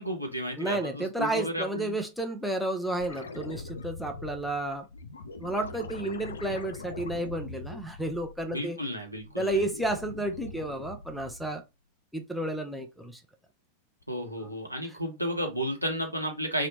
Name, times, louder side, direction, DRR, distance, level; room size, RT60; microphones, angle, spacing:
voice 1, 0.0-2.0 8.5-9.6 14.1-16.7, equal, 90° right, 0.8 m, -33 dB
voice 2, 0.6-4.8 5.4-8.8 9.4-11.6 12.1-13.2, right 1 dB, ahead, 0.5 m, -31 dB
sound 1, 2.9-8.7 9.1-11.6 14.0-14.1, left 3 dB, 70° left, 0.4 m, -42 dB
2.8 x 2.1 x 2.7 m
figure-of-eight pair, 90°, 0 cm